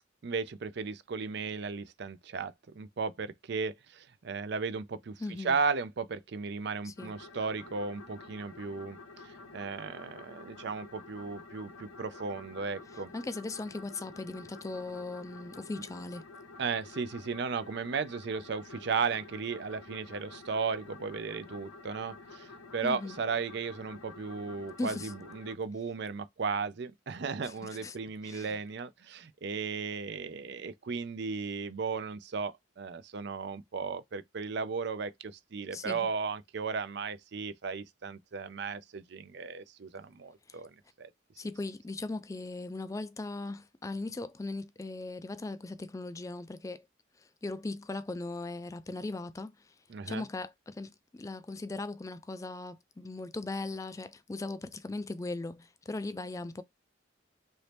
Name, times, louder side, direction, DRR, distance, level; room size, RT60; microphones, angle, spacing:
voice 1, 0.2-9.0 9.2-13.1 16.6-41.1 49.9-50.2, right 5 dB, 60° right, 0.5 m, -35 dB
voice 2, 5.2-5.6 6.8-7.1 12.9-16.2 22.8-23.2 24.8-25.1 27.4-28.0 28.2-28.6 35.7-36.1 40.5-40.6 41.4-46.9 47.2-49.7 50.0-56.6, left 2 dB, 15° left, 0.3 m, -39 dB
sound 1, 7.0-25.6, left 3 dB, 80° left, 0.7 m, -50 dB
3.0 x 2.7 x 3.3 m
head